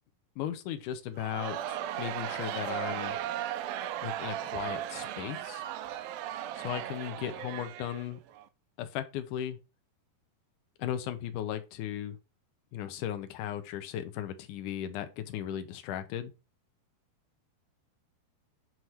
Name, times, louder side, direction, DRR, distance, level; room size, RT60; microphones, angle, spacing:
voice 1, 0.4-3.2 4.0-5.6 6.6-8.2 8.8-9.6 10.8-12.2 12.7-16.3, left 10 dB, 75° left, 1.9 m, -36 dB
Crowd, 1.2-8.4, right 11 dB, 80° right, 2.3 m, -36 dB
9.2 x 3.2 x 5.7 m
omnidirectional pair, 4.6 m